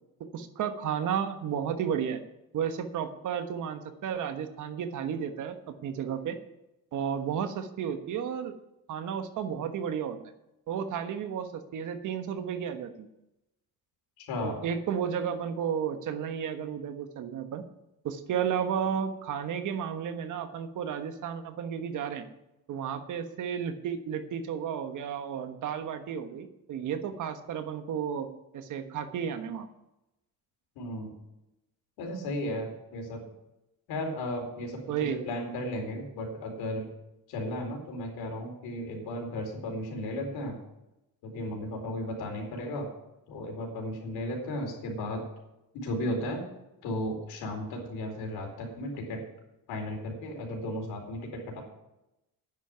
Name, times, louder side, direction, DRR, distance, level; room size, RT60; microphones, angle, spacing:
voice 1, 0.3-2.2 2.5-6.4 6.9-8.5 8.9-10.2 10.7-13.1 14.4-17.6 18.0-22.2 22.7-28.3 28.5-29.7 34.9-35.2, right 8 dB, 55° right, 8 dB, 1.3 m, -33 dB
voice 2, 14.2-14.6 30.8-31.1 32.0-33.2 33.9-36.9 37.3-40.6 41.2-42.9 43.3-45.2 45.7-46.4 46.8-49.2 49.7-51.6, left 1 dB, 85° left, 2 dB, 4.3 m, -35 dB
10.0 x 7.4 x 9.4 m, 0.91 s
cardioid pair, 155°, 37 cm